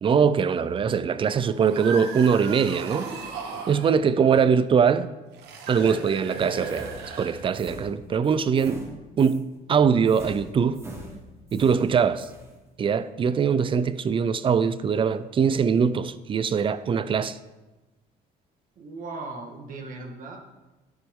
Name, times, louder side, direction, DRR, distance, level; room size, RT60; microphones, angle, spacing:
voice 1, 0.0-3.0 3.7-5.1 5.7-6.9 7.2-8.9 9.2-10.9 11.5-12.3 12.8-17.4, right 6 dB, 30° right, 0.5 m, -22 dB
sound 1, 1.5-3.9 5.3-7.8, right 4 dB, 85° right, 1.3 m, -36 dB
sound 2, 6.7-9.5 10.1-12.5, right 1 dB, 15° right, 1.6 m, -42 dB
voice 2, 18.8-20.4, right 3 dB, 55° right, 1.6 m, -37 dB
10.5 x 6.9 x 3.7 m
cardioid pair, 110°, 17 cm